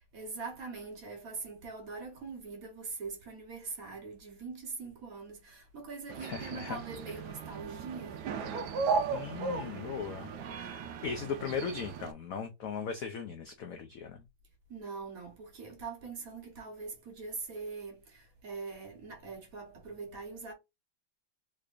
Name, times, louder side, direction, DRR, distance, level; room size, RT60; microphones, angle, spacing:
voice 1, 0.1-8.3 14.7-20.5, right 4 dB, 50° right, 1.4 m, -42 dB
sound 1, 6.1-12.1, right 5 dB, 70° right, 1.0 m, -36 dB
voice 2, 6.2-6.8 9.1-14.2, left 6 dB, 85° left, 0.7 m, -38 dB
3.7 x 3.3 x 2.4 m
omnidirectional pair, 2.1 m